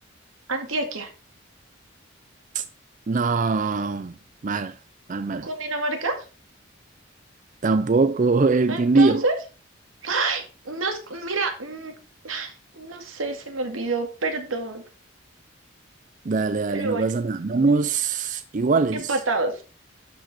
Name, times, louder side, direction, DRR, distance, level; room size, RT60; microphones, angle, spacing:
voice 1, 0.5-1.1 5.4-6.2 8.7-9.4 10.0-11.9 12.2-14.8 16.7-17.0 18.9-19.6, right 3 dB, 90° right, 2.3 m, -28 dB
voice 2, 3.1-4.1 4.4-4.8 5.1-5.5 7.6-9.2 16.2-19.2, right 4 dB, 40° right, 0.4 m, -22 dB
12.0 x 5.5 x 4.2 m
head